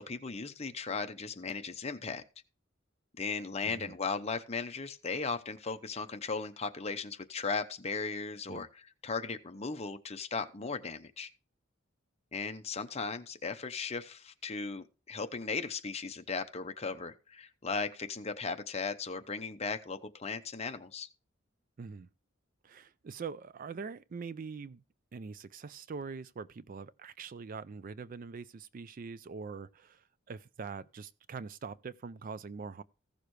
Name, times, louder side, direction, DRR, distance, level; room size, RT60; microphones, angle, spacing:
voice 1, 0.0-2.2 3.2-11.3 12.3-21.1, left 4 dB, 30° left, 0.8 m, -37 dB
voice 2, 3.6-4.0 8.5-8.7 21.8-22.1 22.6-24.8 25.1-32.8, right 5 dB, 45° right, 0.4 m, -43 dB
15.5 x 6.6 x 3.2 m
head